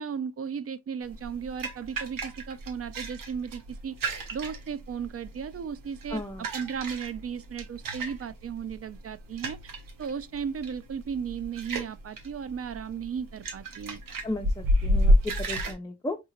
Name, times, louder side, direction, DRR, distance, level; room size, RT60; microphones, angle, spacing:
voice 1, 0.0-9.6 10.0-14.0, right 7 dB, 45° right, 0.4 m, -35 dB
sound 1, 1.0-15.7, equal, 85° right, 0.9 m, -30 dB
voice 2, 6.1-6.4 14.2-16.2, left 2 dB, 10° left, 0.6 m, -34 dB
4.7 x 2.9 x 2.4 m
cardioid pair, 55°, 32 cm